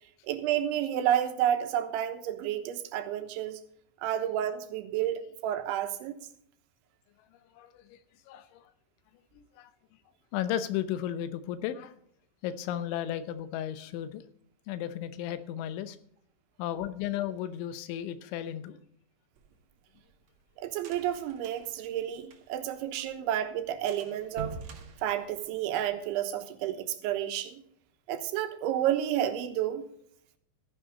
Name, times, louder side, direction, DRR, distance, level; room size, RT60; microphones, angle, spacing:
voice 1, 0.3-3.6 4.0-6.2 20.6-24.6 25.0-27.6 28.1-29.9, right 11 dB, 90° right, 3.5 m, -30 dB
voice 2, 7.3-8.0 8.3-8.7 9.3-9.7 10.3-11.9 12.4-14.2 14.7-16.0 16.6-18.8, left 11 dB, 85° left, 3.4 m, -34 dB
sound 1, 19.4-22.8 23.1-23.2 23.4-23.6 23.9-25.9, right 5 dB, 55° right, 1.9 m, -45 dB
15.0 x 10.5 x 3.9 m
omnidirectional pair, 5.3 m